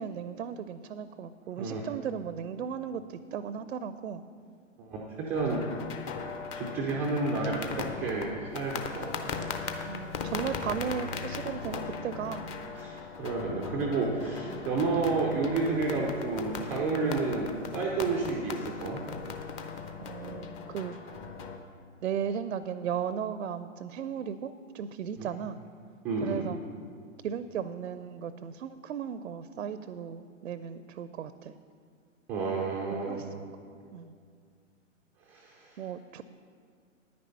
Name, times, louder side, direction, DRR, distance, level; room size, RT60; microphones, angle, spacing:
voice 1, 0.0-4.2 9.8-12.4 14.5-14.7 20.0-21.2 22.0-25.6 26.2-26.6 27.2-31.5 33.1-33.3 33.9-34.1 35.8-36.2, right 8 dB, 70° right, 13 dB, 0.5 m, -36 dB
voice 2, 4.8-5.6 6.5-9.2 12.2-12.3 12.7-19.0 25.2-25.3 26.0-26.4 32.3-33.2 35.3-35.8, right 3 dB, 5° right, -4 dB, 0.3 m, -31 dB
sound 1, 5.3-21.6, left 5 dB, 25° left, 0.7 m, -38 dB
9.8 x 9.5 x 5.6 m, 2.2 s
figure-of-eight pair, 115°, 39 cm